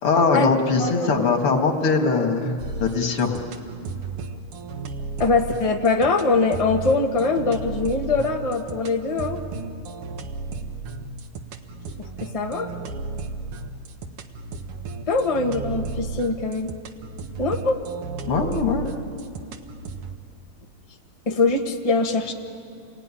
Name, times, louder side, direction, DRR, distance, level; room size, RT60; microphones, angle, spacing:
voice 1, 0.0-2.5 2.8-3.4 18.2-18.9, left 4 dB, 90° left, 4 dB, 3.0 m, -21 dB
voice 2, 0.8-1.2 5.2-9.4 12.0-12.7 15.1-16.7 17.4-17.8 21.3-22.3, left 3 dB, 20° left, 2 dB, 1.3 m, -22 dB
sound 1, 2.6-20.2, right 4 dB, 90° right, 2.1 m, -34 dB
28.0 x 20.5 x 9.9 m, 2.5 s
omnidirectional pair, 2.4 m